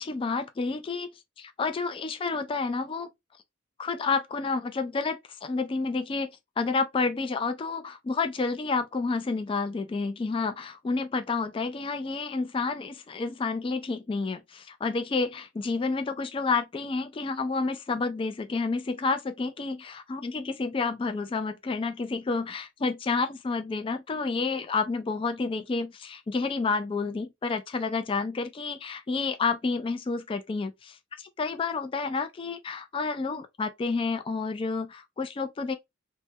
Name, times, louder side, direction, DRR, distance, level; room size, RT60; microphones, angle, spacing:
voice 1, 0.0-3.1 3.8-6.3 6.6-35.7, left 4 dB, 25° left, 0.3 m, -30 dB
3.2 x 2.1 x 2.6 m
head